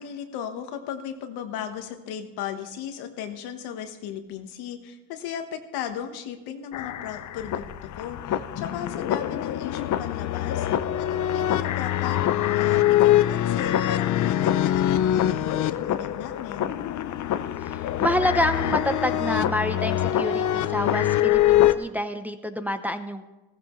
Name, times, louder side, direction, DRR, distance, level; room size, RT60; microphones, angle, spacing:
voice 1, 0.0-10.7 11.0-12.2 12.5-16.7, left 9 dB, 80° left, 7 dB, 1.4 m, -36 dB
sound 1, 6.7-21.7, left 12 dB, 50° left, 0.6 m, -24 dB
voice 2, 17.6-23.3, equal, 5° right, 7 dB, 0.7 m, -27 dB
15.5 x 14.5 x 3.2 m, 1.1 s
cardioid pair, 100°, 38 cm